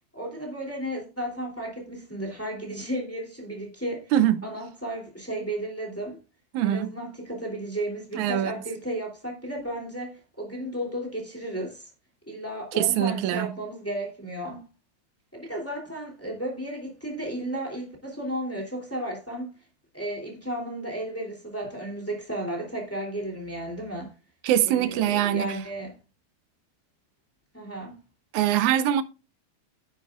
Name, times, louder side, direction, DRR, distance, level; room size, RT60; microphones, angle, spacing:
voice 1, 0.1-4.1 4.4-6.2 6.6-11.9 12.3-14.6 15.3-19.5 19.9-24.1 24.6-25.9 27.5-28.0, right 1 dB, 5° left, 2.5 m, -34 dB
voice 2, 4.1-4.5 6.5-6.9 8.2-8.5 12.8-13.5 24.4-25.6 28.3-29.0, right 11 dB, 85° right, 2.2 m, -23 dB
9.8 x 9.5 x 2.4 m
omnidirectional pair, 3.4 m